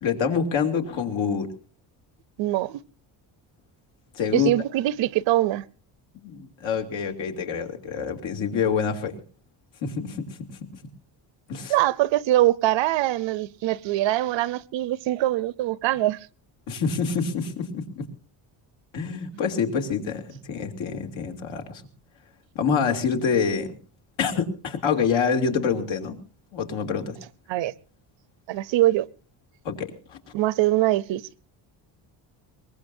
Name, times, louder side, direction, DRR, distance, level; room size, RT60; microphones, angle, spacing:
voice 1, 0.0-1.5 4.1-4.5 6.2-9.2 9.8-10.7 11.5-11.7 16.7-18.1 18.9-21.8 22.5-23.7 24.2-26.2 26.5-27.2 29.6-30.2, left 6 dB, 75° left, 2.8 m, -26 dB
voice 2, 2.4-2.8 4.3-5.6 11.7-16.3 27.5-27.7 28.5-29.1 30.3-31.2, right 15 dB, 75° right, 0.8 m, -23 dB
23.0 x 20.0 x 2.7 m
cardioid pair, 135°, 45 cm